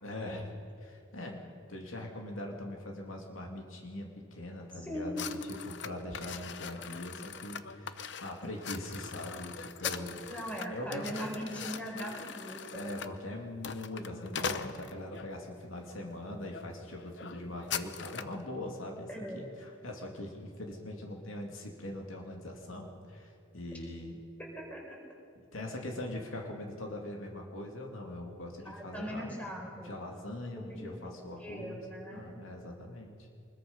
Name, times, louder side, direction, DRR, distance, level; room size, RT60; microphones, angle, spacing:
voice 1, 0.0-0.5 0.8-1.4 1.7-5.4 5.6-10.2 10.7-11.6 12.7-19.1 19.3-24.2 25.3-29.5 29.7-31.8 32.1-33.3, left 1 dB, 85° left, 1 dB, 2.7 m, -42 dB
voice 2, 4.8-5.5 10.3-13.0 19.1-19.4 24.4-25.0 28.6-29.9 30.6-32.2, equal, 5° left, -1 dB, 4.3 m, -40 dB
sound 1, 5.2-15.3 15.9-16.1 16.5-16.7 16.9-18.4, left 7 dB, 60° left, 0.8 m, -41 dB
23.5 x 21.0 x 5.6 m, 2.4 s
head